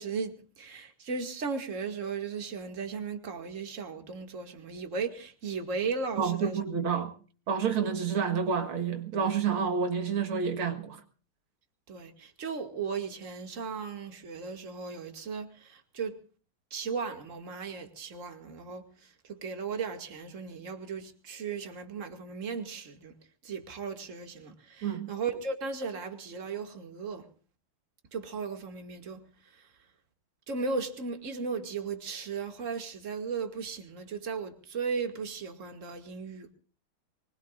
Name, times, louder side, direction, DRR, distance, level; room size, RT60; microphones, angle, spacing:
voice 1, 0.0-6.6 7.8-7.9 11.9-16.2 16.7-18.8 19.3-23.1 23.4-27.3 28.1-29.2 30.5-36.5, right 5 dB, 35° right, 2.5 m, -36 dB
voice 2, 6.2-7.1 7.5-11.0 24.8-25.1, right 6 dB, 75° right, 2.5 m, -29 dB
24.5 x 20.5 x 2.5 m
omnidirectional pair, 2.3 m